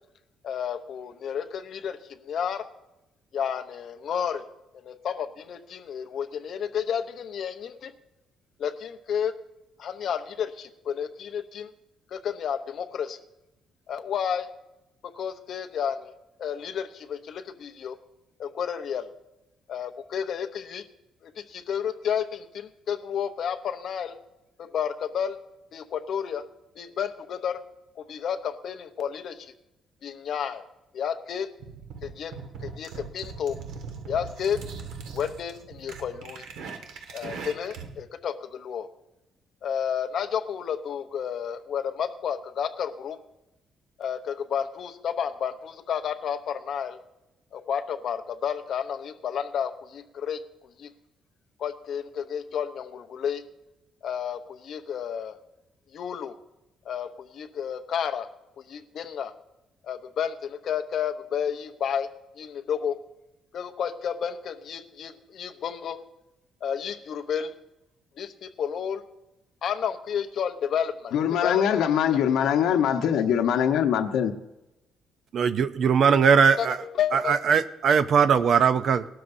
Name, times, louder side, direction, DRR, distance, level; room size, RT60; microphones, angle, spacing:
voice 1, 0.4-2.7 3.3-4.4 4.8-7.9 8.6-9.4 9.8-11.7 12.1-13.2 13.9-14.5 15.1-16.1 16.4-18.0 18.4-19.1 19.7-20.8 21.2-24.2 24.6-25.4 25.7-26.4 26.8-27.6 28.0-29.5 30.0-30.6 30.9-31.5 32.0-32.3 32.6-33.6 34.1-34.6 35.1-36.4 37.1-38.9 39.6-43.2 44.0-47.0 47.5-50.4 50.8-50.9 51.6-53.4 54.0-55.4 55.9-56.3 56.8-58.3 58.6-59.3 59.8-62.1 62.4-63.0 63.5-66.0 66.6-67.5 68.2-69.0 69.6-71.1 71.4-71.8 76.6-76.7 77.0-77.4, left 8 dB, 45° left, 0.8 m, -31 dB
sound 1, 31.6-38.0, right 5 dB, 80° right, 1.6 m, -40 dB
voice 2, 71.1-74.3, left 9 dB, 70° left, 1.0 m, -23 dB
voice 3, 75.3-76.8 77.1-79.1, right 6 dB, 45° right, 0.6 m, -20 dB
20.0 x 12.5 x 2.7 m
cardioid pair, 180°, 0 cm